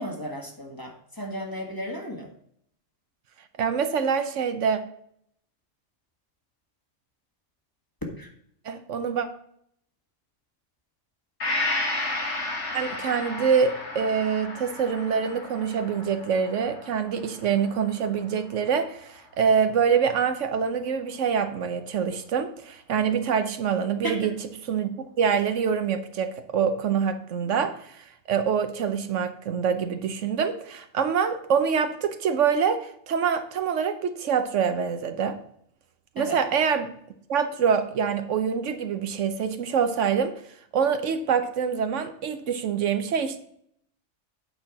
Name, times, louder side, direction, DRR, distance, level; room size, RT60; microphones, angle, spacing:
voice 1, 0.0-2.3 8.2-8.3 24.0-24.2 36.2-36.4, equal, 15° left, 1 dB, 1.3 m, -34 dB
voice 2, 3.6-4.8 8.6-9.3 12.7-24.3 24.7-35.4 36.2-36.9 37.3-40.3 40.7-43.4, right 6 dB, 75° right, 9 dB, 1.1 m, -25 dB
Gong, 11.4-19.0 19.4-19.5, left 2 dB, 65° left, 1.9 m, -33 dB
8.7 x 4.3 x 5.9 m, 0.68 s
omnidirectional pair, 1.3 m